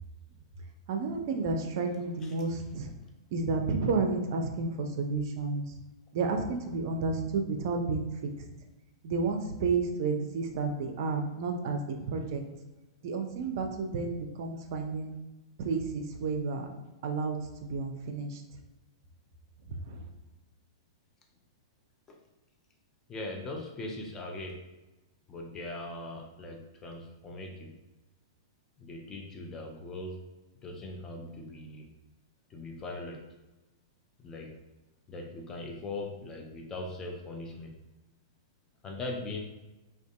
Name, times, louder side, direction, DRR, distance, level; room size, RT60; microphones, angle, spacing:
voice 1, 0.9-2.9 3.3-5.6 6.1-8.1 9.0-12.4 13.0-15.1 15.6-16.7 17.0-18.4 19.9-20.0, right 4 dB, 50° right, 4 dB, 0.4 m, -31 dB
voice 2, 23.1-24.6 25.3-27.7 28.8-30.2 30.6-31.8 32.5-33.2 34.2-34.6 35.1-37.8 38.8-39.4, left 2 dB, 20° left, 1 dB, 0.5 m, -40 dB
2.5 x 2.3 x 2.3 m, 1.1 s
figure-of-eight pair, 105°, 2 cm